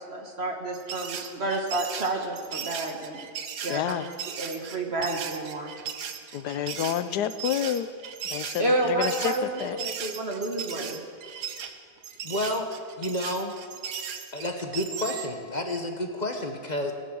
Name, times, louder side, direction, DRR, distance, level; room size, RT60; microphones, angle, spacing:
voice 1, 0.0-3.2 3.6-3.9 4.3-5.7 8.6-9.5 9.8-11.0, right 2 dB, 40° right, 2 dB, 1.7 m, -30 dB
sound 1, 0.7-15.3, right 7 dB, 80° right, 1.5 m, -37 dB
voice 2, 3.7-4.1 6.3-7.9 8.2-9.8, left 10 dB, 90° left, 13 dB, 1.2 m, -29 dB
voice 3, 12.2-12.7 13.0-13.6 14.3-16.9, left 1 dB, 30° left, 4 dB, 1.0 m, -30 dB
17.5 x 10.0 x 6.3 m, 2.1 s
omnidirectional pair, 1.7 m